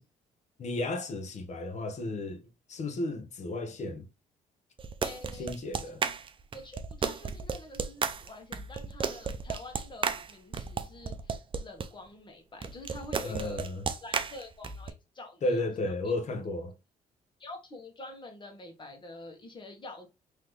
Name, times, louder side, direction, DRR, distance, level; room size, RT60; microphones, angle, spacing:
voice 1, 0.6-2.4 2.7-4.0 5.4-6.0 13.2-13.8 15.4-16.7, left 2 dB, 50° left, 1.1 m, -33 dB
sound 1, 4.8-11.9 12.6-14.9, right 5 dB, 35° right, 0.6 m, -33 dB
voice 2, 5.0-5.5 6.5-13.7 14.0-15.7 17.4-20.1, left 2 dB, 30° left, 1.5 m, -47 dB
3.9 x 3.2 x 3.1 m
cardioid pair, 85°, 15 cm